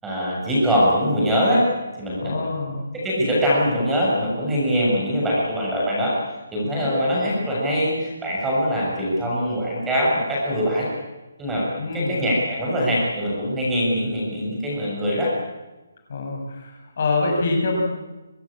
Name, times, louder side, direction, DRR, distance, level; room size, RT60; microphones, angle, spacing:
voice 1, 0.0-1.6 2.0-2.4 2.9-6.1 6.5-10.9 11.4-11.7 11.9-15.3, equal, 5° right, -6 dB, 7.1 m, -22 dB
voice 2, 2.2-2.8 6.6-6.9 11.8-12.2 16.1-17.8, left 3 dB, 45° left, 2 dB, 6.8 m, -25 dB
25.0 x 19.0 x 8.8 m, 1.1 s
hypercardioid pair, 170°, 0 cm